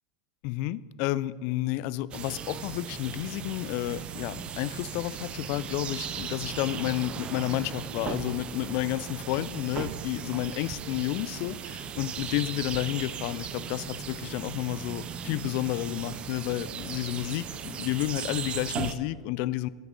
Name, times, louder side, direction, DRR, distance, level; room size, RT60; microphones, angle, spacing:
voice 1, 0.4-19.7, left 16 dB, 50° left, 19 dB, 0.3 m, -31 dB
sound 1, 2.1-18.9, right 7 dB, 30° right, 0.5 m, -37 dB
13.0 x 6.0 x 3.9 m, 1.5 s
hypercardioid pair, 105°, 4 cm